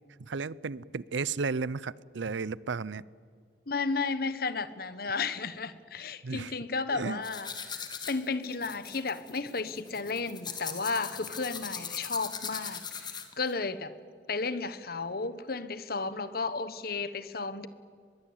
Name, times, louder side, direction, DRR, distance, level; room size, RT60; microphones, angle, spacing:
voice 1, 0.3-3.0 6.2-6.5 6.9-7.2, right 4 dB, 90° right, 22 dB, 0.6 m, -33 dB
voice 2, 3.7-13.9 14.3-17.7, left 4 dB, 55° left, 14 dB, 1.2 m, -33 dB
sound 1, 7.2-13.5, left 6 dB, 25° left, 2.0 m, -40 dB
24.5 x 21.5 x 8.8 m, 2.2 s
head